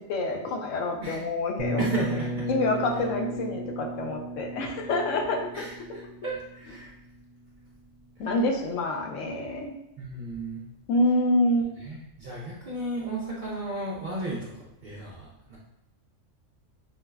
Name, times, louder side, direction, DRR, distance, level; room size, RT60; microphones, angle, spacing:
voice 1, 0.1-1.8 2.5-5.6 8.2-9.7 10.9-11.7, left 1 dB, 75° left, 2 dB, 0.9 m, -27 dB
sound 1, 1.6-7.4, right 1 dB, 75° right, 0.9 m, -35 dB
voice 2, 1.8-2.5 2.9-3.1 5.5-6.9 8.2-8.4 10.0-10.6 11.8-15.6, right 2 dB, 55° right, -5 dB, 0.5 m, -34 dB
4.5 x 2.0 x 2.2 m, 0.88 s
omnidirectional pair, 1.3 m